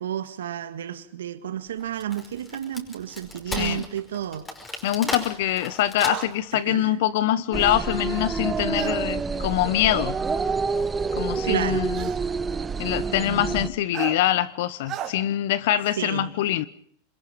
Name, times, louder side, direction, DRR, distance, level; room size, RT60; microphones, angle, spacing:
voice 1, 0.0-4.5 6.5-7.0 11.4-11.9 16.0-16.3, right 10 dB, 80° right, 1.7 m, -31 dB
Wood, 1.8-6.5, left 1 dB, 15° left, 5.3 m, -35 dB
voice 2, 4.8-10.1 11.1-12.1 12.8-16.6, left 13 dB, 70° left, 1.0 m, -24 dB
sound 1, 5.9-6.3 8.7-9.0 10.3-10.4 11.9-12.2 13.9-14.2 14.9-15.1, right 11 dB, 40° right, 3.5 m, -33 dB
sound 2, 7.5-13.7, right 4 dB, 20° right, 1.3 m, -27 dB
27.0 x 21.5 x 5.3 m
hypercardioid pair, 100°, 0 cm